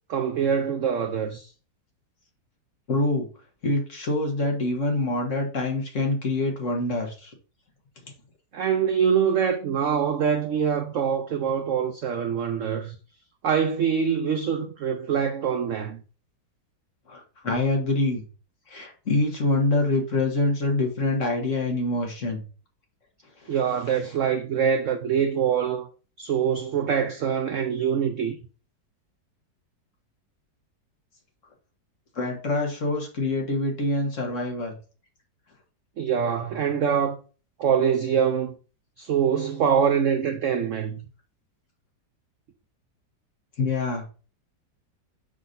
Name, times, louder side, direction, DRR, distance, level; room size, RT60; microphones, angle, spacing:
voice 1, 0.1-1.5 8.5-13.0 13.4-16.0 23.5-25.9 26.2-28.4 36.0-37.2 37.6-38.6 39.0-41.0, right 7 dB, 75° right, 0.7 m, -24 dB
voice 2, 2.9-3.3 3.6-7.3 17.1-18.2 18.7-22.4 23.4-23.5 32.1-34.7 43.6-44.0, left 2 dB, 45° left, 1.5 m, -25 dB
6.3 x 5.7 x 2.6 m
omnidirectional pair, 1.9 m